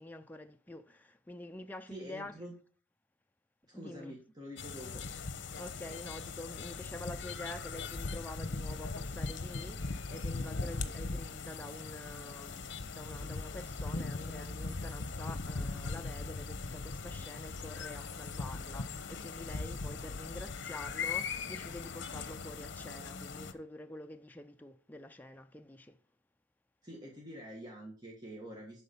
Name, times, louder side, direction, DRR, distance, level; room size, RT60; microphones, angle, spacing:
voice 1, 0.0-2.3 3.7-4.1 5.6-12.7 12.9-26.0, left 1 dB, 10° left, 0.4 m, -47 dB
voice 2, 1.9-2.5 3.7-5.0 26.8-28.8, equal, 20° right, 1.5 m, -46 dB
sound 1, 4.6-23.5, left 4 dB, 75° left, 0.8 m, -39 dB
11.0 x 4.1 x 5.3 m
head